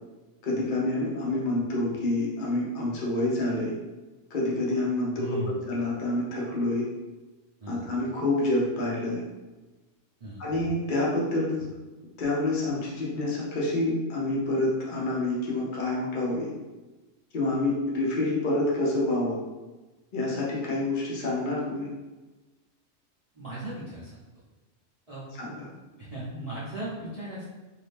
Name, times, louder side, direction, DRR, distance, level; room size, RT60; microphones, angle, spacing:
voice 1, 0.4-3.7 4.3-6.8 7.7-9.2 10.4-11.7 12.2-16.5 17.3-19.4 20.1-21.9 25.4-25.7, left 2 dB, 45° left, -4 dB, 0.9 m, -27 dB
voice 2, 5.2-5.6 7.6-7.9 10.2-10.4 23.3-24.2 25.1-25.3 26.0-27.4, right 1 dB, 35° right, -10 dB, 0.7 m, -36 dB
2.8 x 2.6 x 3.3 m, 1.2 s
omnidirectional pair, 1.3 m